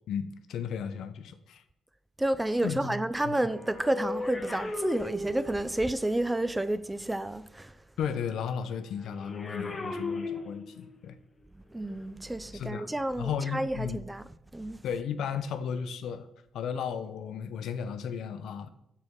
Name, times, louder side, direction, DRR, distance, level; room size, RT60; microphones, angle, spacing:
voice 1, 0.1-1.6 2.6-3.0 3.2-3.4 8.0-11.2 12.5-12.9 13.2-14.0 14.8-16.3 16.5-18.7, left 7 dB, 75° left, 0.5 m, -34 dB
voice 2, 2.2-7.7 11.7-14.2 14.5-14.8, right 1 dB, 10° right, 0.3 m, -30 dB
sound 1, 3.1-5.9 9.0-11.0 11.8-12.0, left 3 dB, 30° left, 0.9 m, -37 dB
6.8 x 4.2 x 3.6 m
cardioid pair, 90°, 0 cm